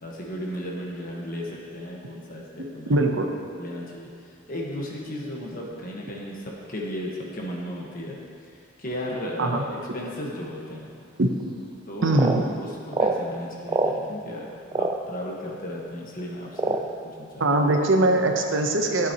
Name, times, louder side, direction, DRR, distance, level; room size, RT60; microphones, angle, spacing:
voice 1, 0.0-3.0 3.6-8.2 8.5-9.7 9.9-10.9 11.9-14.5 14.7-17.6, left 1 dB, 45° left, -2 dB, 1.3 m, -35 dB
voice 2, 2.6-3.3 9.4-9.6 11.2-11.3 12.0-12.4 17.4-19.1, right 2 dB, 65° right, 3 dB, 0.8 m, -22 dB
sound 1, 11.4-11.5 12.1-12.4 12.9-13.2 13.7-14.0 14.7-14.9 15.8-15.9 16.5-17.0 17.6-17.8, right 3 dB, 20° right, 0.4 m, -24 dB
12.5 x 8.1 x 2.9 m, 2.4 s
head